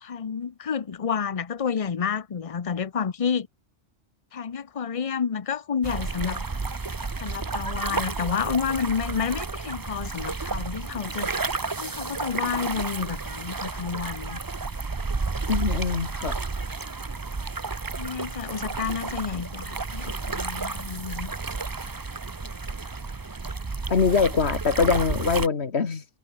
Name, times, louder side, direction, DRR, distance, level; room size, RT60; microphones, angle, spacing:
voice 1, 0.0-3.5 4.3-6.5 7.2-11.3 11.8-14.4 18.0-21.3, left 6 dB, 35° left, 0.8 m, -30 dB
sound 1, 5.8-25.5, right 3 dB, 20° right, 0.6 m, -31 dB
voice 2, 15.5-16.4 23.9-26.1, left 5 dB, 60° left, 1.9 m, -23 dB
omnidirectional pair, 1.2 m